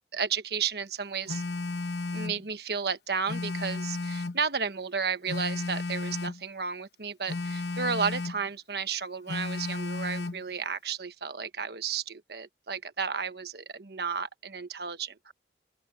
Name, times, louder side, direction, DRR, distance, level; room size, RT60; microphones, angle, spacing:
voice 1, 0.1-1.4 2.1-15.3, right 6 dB, 65° right, 1.3 m, -33 dB
Telephone, 1.3-2.4 3.3-4.4 5.3-6.4 7.3-8.4 9.3-10.4, left 3 dB, 75° left, 1.0 m, -33 dB
open air
head